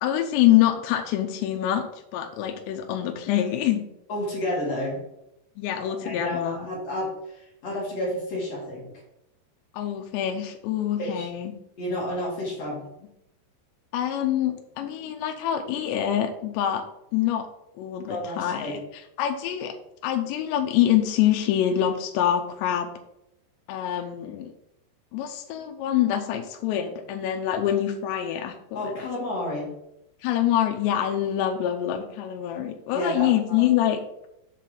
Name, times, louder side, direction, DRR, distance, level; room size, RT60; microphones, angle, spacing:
voice 1, 0.0-1.9 2.1-3.8 5.6-6.7 9.7-11.5 13.9-16.8 17.1-17.5 17.8-19.8 20.0-22.9 23.7-24.5 25.1-29.1 30.2-34.0, left 11 dB, 90° left, 4 dB, 2.8 m, -25 dB
voice 2, 4.1-5.0 5.7-8.9 11.0-11.3 11.8-12.8 18.1-18.8 28.7-29.7 32.9-33.7, left 1 dB, 45° left, -4 dB, 2.4 m, -31 dB
7.2 x 5.8 x 3.9 m, 0.82 s
omnidirectional pair, 5.0 m